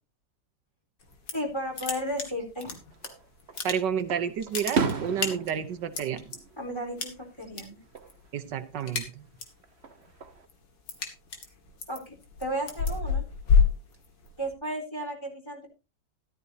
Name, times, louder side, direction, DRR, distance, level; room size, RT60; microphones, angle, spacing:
sound 1, 1.0-1.5 1.8-3.1 3.4-4.1 4.4-6.4 7.0-7.6 7.9-8.3 8.6-9.6 10.0-14.5, left 5 dB, 85° left, 2.8 m, -28 dB
voice 1, 1.3-2.7 6.6-7.8 11.9-13.2 14.4-15.7, equal, 15° left, 1 dB, 4.1 m, -34 dB
Fireworks, 2.9-3.6 4.1-7.2 7.5-8.1 9.6-10.5, right 5 dB, 40° right, 1.3 m, -34 dB
voice 2, 3.6-6.2 8.3-9.2, right 8 dB, 80° right, 10 dB, 1.6 m, -30 dB
13.5 x 13.0 x 2.8 m, 0.29 s
omnidirectional pair, 1.9 m